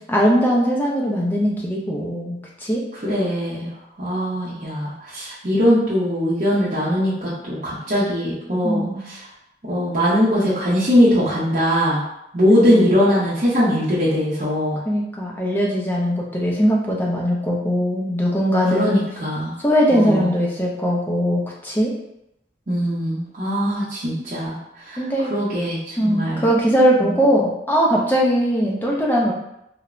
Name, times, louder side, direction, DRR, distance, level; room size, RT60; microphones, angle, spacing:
voice 1, 0.1-2.8 8.6-9.0 12.6-12.8 14.9-19.0 19.6-21.9 25.0-25.3 26.0-29.3, equal, 10° left, -3 dB, 0.4 m, -20 dB
voice 2, 3.0-3.7 4.0-9.2 9.6-12.0 12.3-14.8 18.7-19.5 19.9-20.3 22.7-24.6 24.8-25.0 25.3-26.4 27.0-27.2, equal, 40° right, -10 dB, 0.6 m, -20 dB
3.1 x 2.1 x 2.4 m, 0.83 s
head